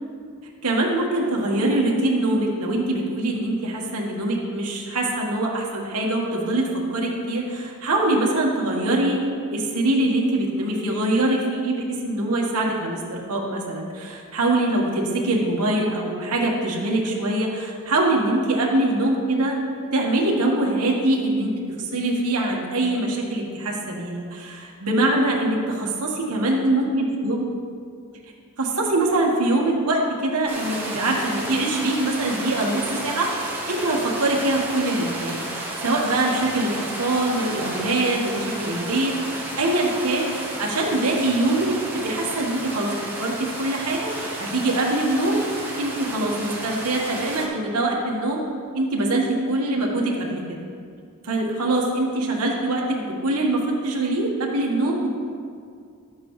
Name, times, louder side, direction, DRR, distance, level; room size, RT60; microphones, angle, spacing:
voice 1, 0.6-9.2 9.5-19.6 19.9-21.5 21.8-27.5 28.6-45.4 45.8-48.4 48.7-50.6 51.2-55.1, right 2 dB, 90° right, -2 dB, 1.4 m, -23 dB
sound 1, 30.5-47.5, right 1 dB, 10° right, 1.4 m, -32 dB
12.0 x 7.6 x 3.1 m, 2.3 s
head